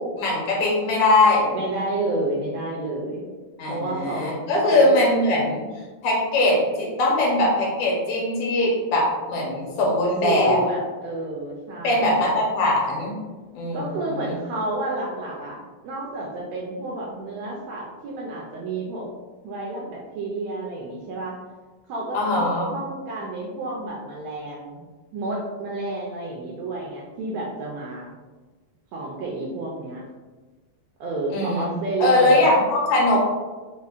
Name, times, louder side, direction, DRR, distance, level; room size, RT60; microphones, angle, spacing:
voice 1, 0.0-1.5 3.6-5.7 6.0-10.6 11.8-13.2 13.5-13.9 14.2-14.3 22.1-22.7 31.3-31.7 32.0-33.2, left 2 dB, 80° left, -3 dB, 2.2 m, -21 dB
voice 2, 1.5-3.2 3.7-4.3 4.6-4.9 10.2-12.2 13.7-19.1 19.4-21.4 21.9-24.8 25.1-28.1 28.9-30.0 31.0-32.5, right 2 dB, 80° right, -3 dB, 1.5 m, -30 dB
5.2 x 2.1 x 2.4 m, 1.3 s
omnidirectional pair, 3.3 m